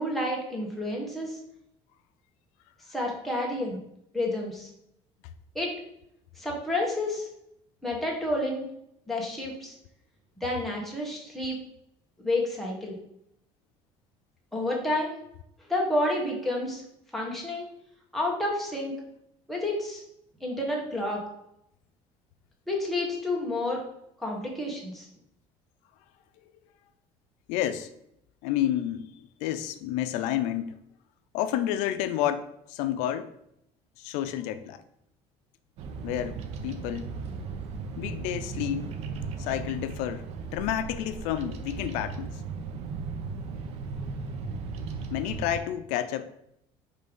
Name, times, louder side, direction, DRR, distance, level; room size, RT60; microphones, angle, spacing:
voice 1, 0.0-1.4 2.9-3.8 4.1-4.7 5.5-5.8 6.4-7.3 7.8-8.7 9.1-9.7 10.4-11.6 12.2-12.9 14.5-15.2 15.7-16.8 17.1-17.7 18.1-18.9 19.5-20.0 20.4-21.2 22.7-23.8 24.2-25.1, left 1 dB, ahead, -3 dB, 1.6 m, -29 dB
voice 2, 27.5-27.9 28.4-30.8 31.3-33.3 34.0-34.8 36.0-36.4 36.6-37.2 38.0-38.9 39.4-40.2 40.5-42.3 45.1-46.3, left 11 dB, 90° left, 10 dB, 0.4 m, -30 dB
Bird vocalization bird call bird song, 35.8-45.6, right 4 dB, 60° right, 0.7 m, -36 dB
5.4 x 3.3 x 5.3 m, 0.77 s
cardioid pair, 135°, 12 cm